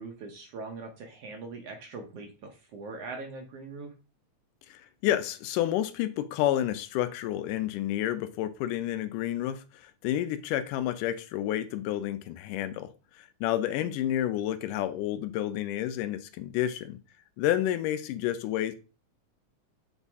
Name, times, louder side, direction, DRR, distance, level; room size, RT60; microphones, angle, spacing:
voice 1, 0.0-3.9 13.8-14.0, right 3 dB, 60° right, 1.8 m, -41 dB
voice 2, 4.7-17.0 17.4-18.8, left 12 dB, 90° left, 2.2 m, -30 dB
7.7 x 4.1 x 3.5 m
omnidirectional pair, 3.6 m